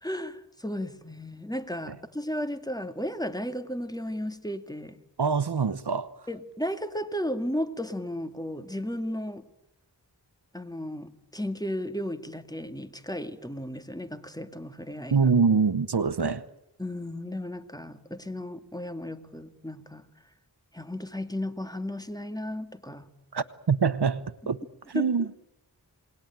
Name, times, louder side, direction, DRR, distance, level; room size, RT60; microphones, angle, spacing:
voice 1, 0.0-5.0 6.3-9.4 10.5-15.3 16.8-20.1 20.7-23.1 24.9-25.3, equal, 10° left, 2.0 m, -34 dB
voice 2, 5.2-6.1 15.1-16.4 23.3-24.6 24.9-25.3, right 5 dB, 75° right, 1.0 m, -24 dB
28.0 x 20.0 x 9.0 m
wide cardioid pair, 55°, 40 cm